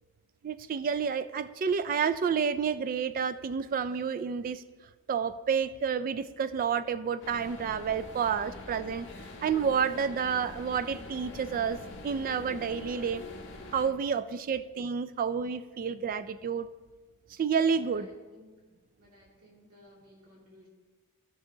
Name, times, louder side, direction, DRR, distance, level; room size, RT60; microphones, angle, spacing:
voice 1, 0.4-4.6 5.1-9.1 9.4-13.2 13.7-16.7 17.4-18.1, right 6 dB, 40° right, 13 dB, 0.3 m, -30 dB
sound 1, 7.2-13.9, left 2 dB, 55° left, 1.2 m, -45 dB
voice 2, 12.8-13.1 17.8-18.6 19.0-20.7, equal, 75° right, -4 dB, 2.3 m, -57 dB
14.0 x 6.3 x 2.7 m, 1.3 s
head